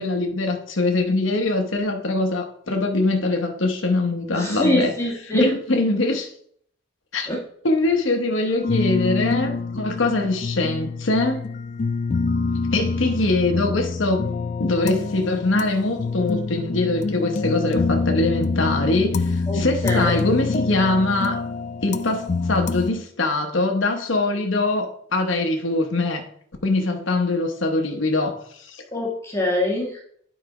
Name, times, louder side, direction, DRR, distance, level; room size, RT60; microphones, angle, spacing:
voice 1, 0.0-4.9 5.3-6.3 7.1-7.3 7.6-11.4 12.7-14.3 14.6-21.4 21.8-26.3 26.6-28.8, left 2 dB, 65° left, 1.0 m, -23 dB
voice 2, 4.3-5.5 7.3-7.4 19.5-20.2 28.9-30.0, left 1 dB, 15° left, 1.4 m, -23 dB
sound 1, 8.6-22.9, left 4 dB, 35° left, 0.3 m, -26 dB
9.1 x 4.2 x 4.9 m
head